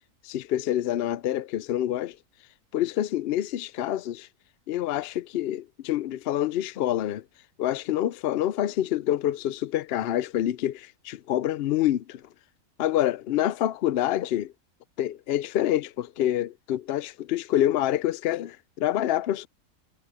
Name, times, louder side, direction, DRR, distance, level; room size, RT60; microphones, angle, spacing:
voice 1, 0.2-2.2 2.7-4.3 4.7-7.2 7.6-12.2 12.8-14.5 15.0-19.5, left 12 dB, 90° left, 0.5 m, -27 dB
omnidirectional pair, 1.6 m